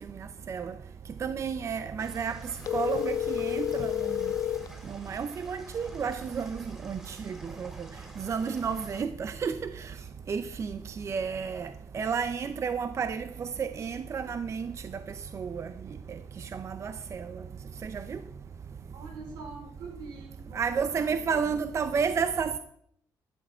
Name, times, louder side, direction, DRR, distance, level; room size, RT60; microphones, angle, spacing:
voice 1, 1.2-2.4 2.7-4.2 4.9-7.9 8.2-9.9 10.3-14.7 15.3-15.7 16.4-17.3 17.8-18.2 20.5-22.6, right 6 dB, 40° right, 0.6 m, -31 dB
sound 1, 2.0-9.0, equal, 5° right, 3.2 m, -51 dB
sound 2, 2.6-4.7, left 10 dB, 50° left, 0.6 m, -30 dB
voice 2, 18.9-21.5 21.7-22.1, right 3 dB, 85° right, 4.6 m, -45 dB
12.5 x 10.0 x 4.5 m
cardioid pair, 115°, 8 cm